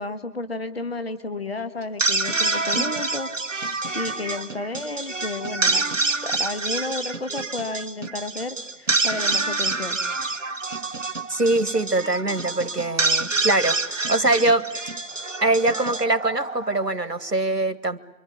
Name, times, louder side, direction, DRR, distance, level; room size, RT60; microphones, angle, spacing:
voice 1, 0.0-5.9 6.2-10.0, left 2 dB, 40° left, 10 dB, 1.6 m, -32 dB
sound 1, 1.8-17.1, right 3 dB, 50° right, 1.1 m, -27 dB
voice 2, 11.3-14.7 15.4-18.0, right 2 dB, 85° right, 12 dB, 2.1 m, -23 dB
28.0 x 24.5 x 8.5 m, 0.91 s
figure-of-eight pair, 165°, 48 cm